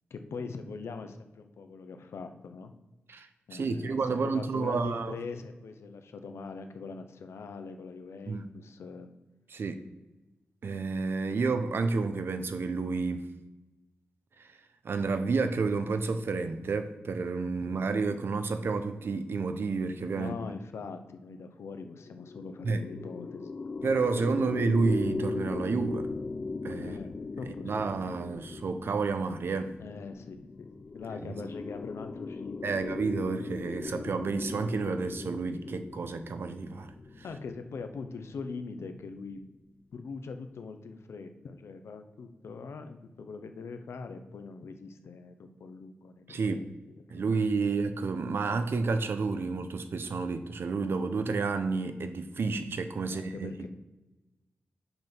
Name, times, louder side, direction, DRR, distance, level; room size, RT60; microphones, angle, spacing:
voice 1, 0.1-2.7 3.5-9.1 17.6-17.8 20.1-23.7 24.4-24.5 26.8-27.1 27.4-27.8 29.8-30.7 30.9-32.8 34.9-35.0 37.2-39.5 39.9-46.6 47.1-47.2 53.0-53.7, left 4 dB, 90° left, 0.8 m, -42 dB
voice 2, 3.1-5.1 8.3-8.5 9.5-9.8 10.6-13.3 14.4-14.5 14.8-20.3 22.6-22.8 23.8-26.1 26.6-27.0 27.5-29.7 32.6-36.9 46.3-46.6 47.1-53.7, right 4 dB, 60° right, 0.6 m, -30 dB
sound 1, 22.0-39.4, left 4 dB, 35° left, 0.4 m, -39 dB
5.9 x 5.3 x 6.1 m
wide cardioid pair, 145°, 4 cm